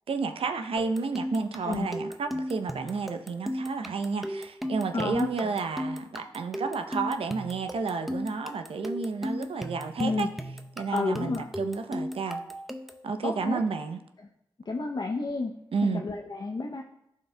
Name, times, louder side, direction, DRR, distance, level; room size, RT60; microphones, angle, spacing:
voice 1, 0.1-10.3 10.8-12.4 13.0-14.0 15.7-16.0, right 4 dB, 75° right, 8 dB, 0.6 m, -31 dB
sound 1, 0.8-13.1, equal, ahead, 0.6 m, -36 dB
voice 2, 4.9-5.3 10.0-10.3 10.9-11.5 13.2-13.6 14.7-15.5 15.8-16.8, left 3 dB, 45° left, 1 dB, 0.6 m, -30 dB
13.5 x 4.7 x 2.2 m, 0.82 s
cardioid pair, 40°, 10 cm